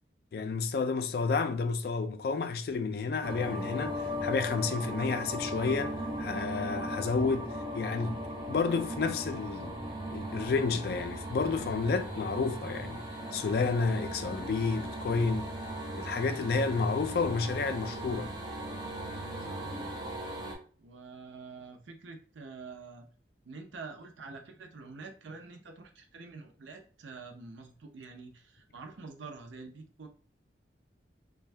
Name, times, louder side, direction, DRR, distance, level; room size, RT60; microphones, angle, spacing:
voice 1, 0.3-8.2 8.5-9.8 10.1-13.0 13.3-15.5 15.9-18.3, left 4 dB, 55° left, 0.3 m, -30 dB
sound 1, 3.2-20.6, right 1 dB, 25° right, 0.6 m, -38 dB
voice 2, 19.1-20.0 20.8-23.1 23.4-30.1, right 4 dB, 85° right, 0.6 m, -47 dB
2.6 x 2.2 x 3.2 m
head